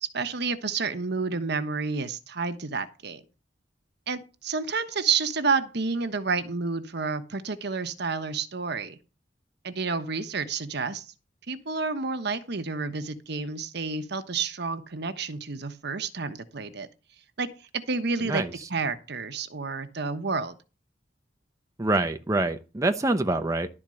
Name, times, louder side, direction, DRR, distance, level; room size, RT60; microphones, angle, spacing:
voice 1, 0.0-3.2 4.1-9.0 9.6-11.0 11.5-16.9 17.4-17.5 17.9-18.4 18.7-20.5, right 4 dB, 60° right, 9 dB, 1.1 m, -30 dB
voice 2, 21.8-23.7, right 2 dB, 20° right, 6 dB, 0.7 m, -25 dB
12.0 x 4.5 x 7.6 m, 0.31 s
head